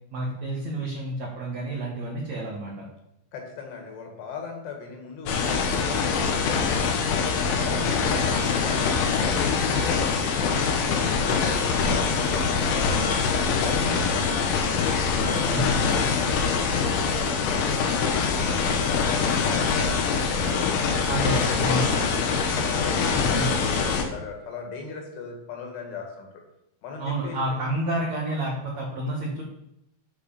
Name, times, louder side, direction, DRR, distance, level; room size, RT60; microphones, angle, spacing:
voice 1, 0.1-2.9 7.7-8.1 15.5-16.0 21.1-22.1 23.2-23.6 27.0-29.4, right 1 dB, 85° right, -2 dB, 1.5 m, -30 dB
voice 2, 3.3-7.0 7.3-10.5 10.8-14.7 15.1-18.4 18.8-22.2 22.5-26.4 26.8-27.7, left 4 dB, 70° left, 2 dB, 3.3 m, -38 dB
sound 1, 5.3-24.0, left 5 dB, 90° left, 3.6 m, -24 dB
9.4 x 5.2 x 5.7 m, 0.81 s
omnidirectional pair, 5.3 m